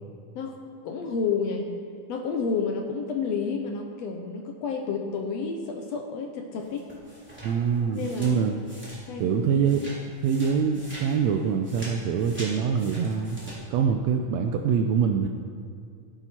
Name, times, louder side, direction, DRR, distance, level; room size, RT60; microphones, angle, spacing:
voice 1, 0.8-1.7 2.1-6.8 7.8-8.7 9.1-9.7, left 5 dB, 70° left, 3 dB, 1.7 m, -30 dB
sound 1, 6.6-9.3 9.6-13.6, equal, 5° right, 3.2 m, -44 dB
voice 2, 7.4-8.5 9.2-9.8 10.2-13.4 13.7-15.3, right 7 dB, 80° right, 4 dB, 1.6 m, -24 dB
16.0 x 9.0 x 4.3 m, 2.4 s
omnidirectional pair, 3.6 m